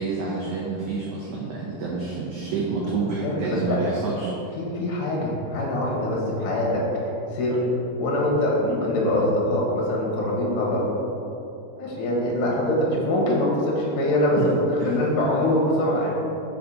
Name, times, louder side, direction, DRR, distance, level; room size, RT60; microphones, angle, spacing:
voice 1, 0.0-4.5 14.4-14.5 14.8-14.9, right 4 dB, 90° right, -4 dB, 1.7 m, -28 dB
voice 2, 3.2-3.8 4.6-7.7 8.0-10.9 11.8-14.4 14.8-16.1, left 1 dB, 65° left, -4 dB, 2.3 m, -24 dB
5.5 x 4.3 x 5.4 m, 2.9 s
omnidirectional pair, 4.5 m